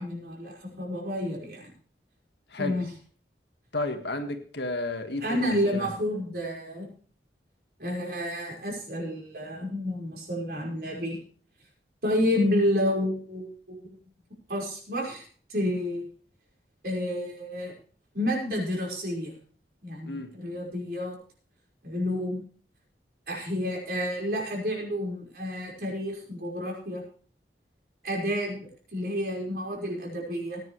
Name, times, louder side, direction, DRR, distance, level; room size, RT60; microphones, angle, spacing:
voice 1, 0.0-1.7 2.6-2.9 5.2-6.9 7.8-11.2 12.0-14.0 14.5-16.0 16.8-17.7 18.1-19.3 19.8-21.2 21.8-22.4 23.3-27.0 28.0-30.6, left 1 dB, 55° right, -1 dB, 5.3 m, -30 dB
voice 2, 3.7-5.9 20.0-20.3, left 2 dB, 70° left, 6 dB, 1.9 m, -32 dB
19.0 x 10.5 x 3.3 m, 0.43 s
head